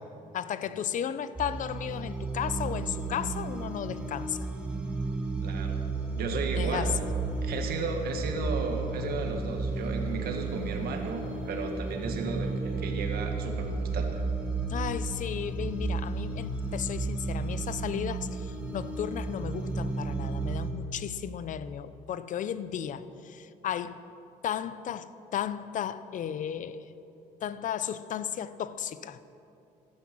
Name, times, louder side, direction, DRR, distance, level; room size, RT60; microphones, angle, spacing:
voice 1, 0.3-4.5 6.5-7.0 14.7-24.0 24.4-26.9 27.4-29.2, left 9 dB, 50° left, 0.6 m, -34 dB
sound 1, 1.4-20.7, right 3 dB, 5° right, 2.1 m, -33 dB
voice 2, 5.4-5.8 6.2-6.9 7.4-14.2, right 4 dB, 65° right, 1.9 m, -34 dB
14.5 x 12.0 x 6.2 m
cardioid pair, 110°, 17 cm